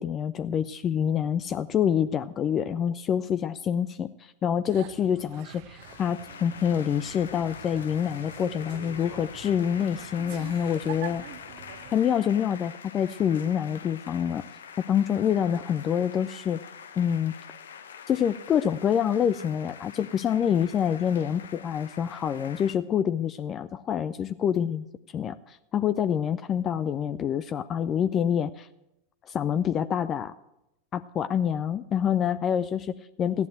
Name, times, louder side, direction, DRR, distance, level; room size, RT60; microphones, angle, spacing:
voice 1, 0.0-11.2 11.9-14.4 14.9-16.6 17.0-17.3 18.1-24.8 25.1-28.7 29.3-30.3 30.9-33.5, left 8 dB, 25° left, 13 dB, 0.5 m, -26 dB
sound 1, 4.7-12.0, right 11 dB, 45° right, 0.9 m, -45 dB
sound 2, 5.8-22.7, left 7 dB, 65° left, 0.9 m, -45 dB
15.0 x 10.5 x 7.9 m, 0.89 s
figure-of-eight pair, 90°, 0 cm